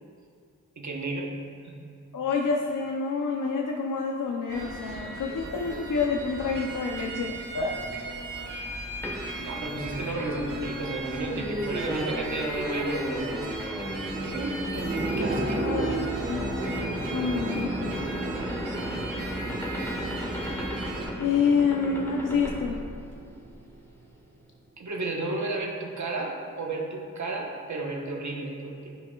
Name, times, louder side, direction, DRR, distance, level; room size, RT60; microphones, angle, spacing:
voice 1, 0.8-1.4 1.6-1.8 8.5-8.7 9.4-15.8 17.5-17.6 24.8-29.0, right 2 dB, 60° right, 0 dB, 1.1 m, -33 dB
voice 2, 2.1-7.8 15.6-18.0 21.2-22.8, left 5 dB, 75° left, 0 dB, 0.7 m, -28 dB
sound 1, 4.5-21.1, right 2 dB, 85° right, 1.2 m, -37 dB
sound 2, 9.0-23.6, equal, 5° left, 1.1 m, -34 dB
sound 3, 14.7-24.0 24.3-24.4, right 2 dB, 40° right, 1.4 m, -36 dB
11.0 x 5.1 x 2.3 m, 2.3 s
cardioid pair, 40°, 32 cm